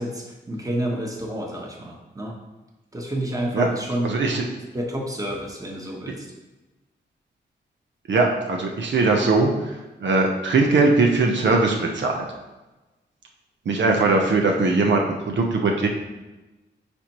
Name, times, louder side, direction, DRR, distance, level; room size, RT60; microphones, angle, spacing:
voice 1, 0.0-2.4 2.9-4.1 4.7-6.3, right 1 dB, 20° right, 0 dB, 1.2 m, -29 dB
voice 2, 4.0-4.4 8.1-12.2 13.6-15.9, right 3 dB, 70° right, 1 dB, 0.9 m, -20 dB
9.9 x 4.4 x 3.0 m, 1.1 s
wide cardioid pair, 100°, 19 cm